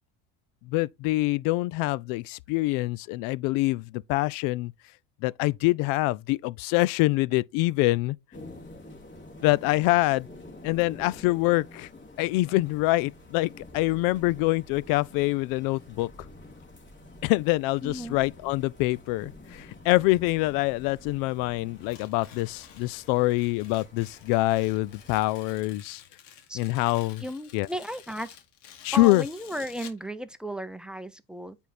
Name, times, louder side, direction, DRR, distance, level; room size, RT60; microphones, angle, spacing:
voice 1, 0.7-4.7 5.2-8.2 9.4-10.3 10.6-11.9 12.2-16.1 17.2-26.0 26.5-27.2 27.5-27.7 28.8-29.2, left 20 dB, 65° left, 0.5 m, -25 dB
sound 1, 8.3-25.1, left 2 dB, 30° left, 3.3 m, -48 dB
voice 2, 17.8-18.2 26.5-26.6 27.2-28.4 28.9-31.6, equal, ahead, 0.7 m, -35 dB
Tearing, 21.7-30.1, left 9 dB, 80° left, 1.8 m, -50 dB
9.0 x 3.6 x 4.2 m
supercardioid pair, 110°, 37 cm